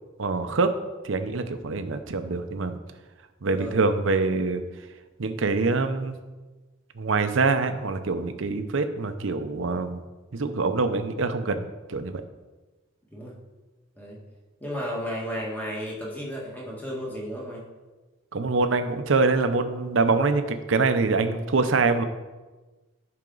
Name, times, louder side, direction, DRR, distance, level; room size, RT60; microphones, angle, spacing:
voice 1, 0.2-0.8 1.0-2.8 3.4-4.6 5.2-6.2 7.0-10.0 10.3-11.6 11.9-12.2 18.3-22.0, right 3 dB, 65° right, 9 dB, 0.7 m, -24 dB
voice 2, 14.6-17.6, equal, 10° left, -3 dB, 1.6 m, -33 dB
10.5 x 5.8 x 3.9 m, 1.2 s
head